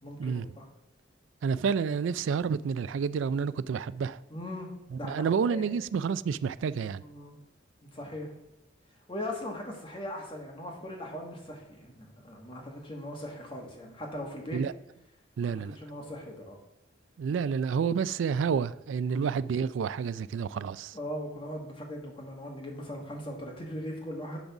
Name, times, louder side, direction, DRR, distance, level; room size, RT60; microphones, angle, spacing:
voice 1, 0.0-0.7 4.3-5.6 7.0-7.3 7.8-8.3 9.1-14.6 15.4-16.6 19.1-19.3 20.9-24.4, left 1 dB, 30° left, 1.7 m, -39 dB
voice 2, 1.4-4.2 4.9-7.0 14.5-14.7 15.4-15.8 17.2-21.0, right 6 dB, 85° right, 0.3 m, -29 dB
10.5 x 4.0 x 6.0 m
head